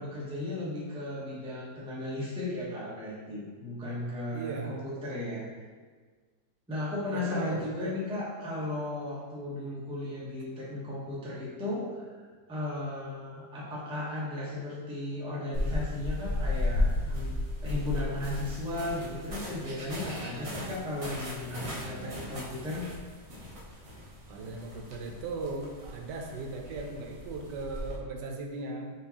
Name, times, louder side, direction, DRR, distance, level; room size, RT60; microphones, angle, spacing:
voice 1, 0.0-5.5 6.7-12.1 12.5-17.3 17.6-22.9, left 2 dB, 5° right, -7 dB, 0.5 m, -35 dB
voice 2, 4.3-4.8 7.1-8.0 20.0-20.8 21.8-22.3 24.3-28.9, right 3 dB, 80° right, 2 dB, 1.2 m, -38 dB
sound 1, 15.5-28.0, left 1 dB, 60° right, 0.3 m, -35 dB
4.6 x 3.7 x 2.8 m, 1.5 s
omnidirectional pair, 1.9 m